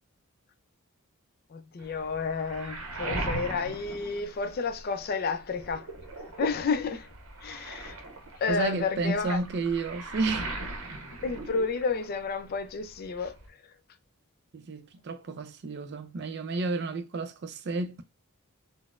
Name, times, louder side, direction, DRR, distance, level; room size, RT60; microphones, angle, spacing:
voice 1, 1.5-5.9 6.4-7.1 7.4-8.0 8.4-9.4 11.2-13.4, left 4 dB, 45° left, 0.4 m, -31 dB
Waves surf, 1.8-5.0 5.4-12.3 12.5-13.5, right 2 dB, 80° right, 0.7 m, -39 dB
voice 2, 8.5-10.5 14.5-18.0, right 3 dB, 50° right, 0.4 m, -31 dB
3.9 x 2.0 x 2.4 m
head